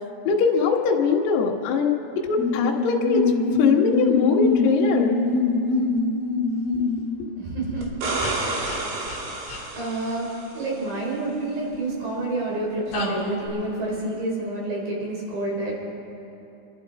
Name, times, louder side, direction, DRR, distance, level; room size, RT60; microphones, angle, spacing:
voice 1, 0.2-3.2 3.6-5.2 11.7-11.9, left 5 dB, 75° left, -2 dB, 3.1 m, -22 dB
sound 1, 2.4-7.2 8.2-8.3 8.6-8.8 9.1-9.2 9.5-9.6 12.9-13.5, left 3 dB, 50° left, 1.9 m, -24 dB
voice 2, 7.4-7.9 8.3-9.0 9.7-15.9, right 2 dB, 50° right, -3 dB, 5.3 m, -29 dB
sound 2, 7.8-10.6 13.5-13.6, right 2 dB, 75° right, 4.2 m, -30 dB
28.5 x 12.0 x 4.1 m, 2.8 s
omnidirectional pair, 5.2 m